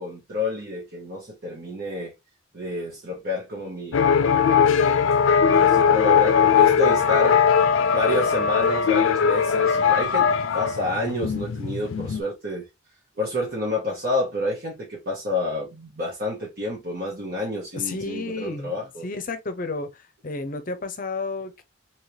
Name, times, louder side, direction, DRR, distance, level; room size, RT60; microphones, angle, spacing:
voice 1, 0.0-2.1 2.5-4.3 5.4-7.4 7.9-12.7 13.2-19.1, left 1 dB, 50° right, 1.1 m, -29 dB
sound 1, 3.9-12.2, left 7 dB, 85° left, 0.4 m, -19 dB
voice 2, 17.7-18.8 19.0-21.6, left 3 dB, 45° left, 0.6 m, -31 dB
3.2 x 2.9 x 2.8 m
head